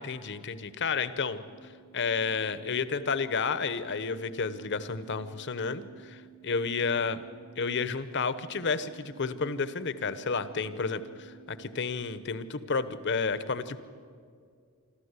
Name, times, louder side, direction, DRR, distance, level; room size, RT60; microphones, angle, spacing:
voice 1, 0.0-1.4 1.9-7.2 7.6-13.8, left 5 dB, 50° left, 13 dB, 0.9 m, -31 dB
sound 1, 1.5-12.0, right 12 dB, 15° right, 1.0 m, -54 dB
26.0 x 13.5 x 8.2 m, 2.1 s
head